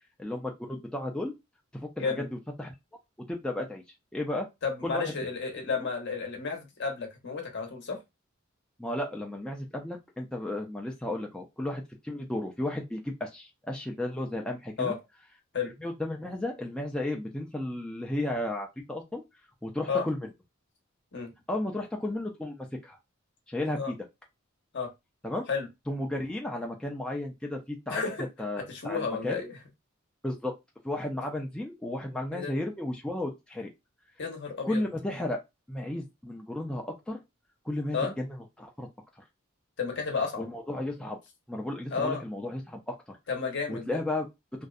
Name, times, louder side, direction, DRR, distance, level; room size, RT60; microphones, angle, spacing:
voice 1, 0.2-1.3 1.7-2.2 2.6-2.7 3.3-3.8 4.1-4.5 4.8-5.1 8.8-14.9 15.8-19.2 19.6-20.2 21.5-23.0 23.5-23.9 25.2-25.4 25.9-28.0 28.4-29.5 30.2-30.5 30.8-33.7 34.6-35.4 35.7-37.2 37.7-38.3 38.6-38.9 40.4-41.2 41.5-43.2 43.7-44.3, left 1 dB, 5° left, 0.3 m, -33 dB
voice 2, 4.6-8.0 14.8-15.0 15.5-15.7 19.9-20.1 21.1-21.3 23.8-23.9 24.7-24.9 25.5-25.7 27.9-28.3 28.6-29.6 32.3-32.5 34.2-34.8 37.9-38.1 39.8-40.4 41.9-42.2 43.3-43.9, left 5 dB, 60° left, 0.8 m, -32 dB
2.6 x 2.1 x 2.3 m
head